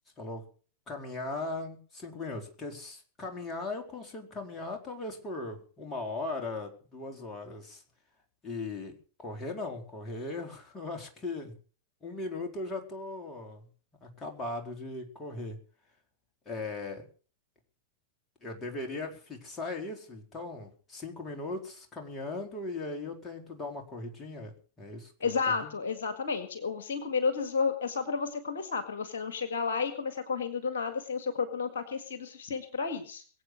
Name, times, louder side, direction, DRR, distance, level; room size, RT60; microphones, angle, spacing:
voice 1, 0.9-7.8 8.4-8.9 9.2-11.5 12.0-13.6 14.0-15.6 16.5-17.1 18.4-25.3 25.6-25.7, left 2 dB, 20° left, 2 dB, 4.1 m, -38 dB
voice 2, 25.2-33.2, left 5 dB, 60° left, 9 dB, 1.8 m, -32 dB
22.0 x 8.4 x 6.6 m, 0.42 s
figure-of-eight pair, 90°, 0 cm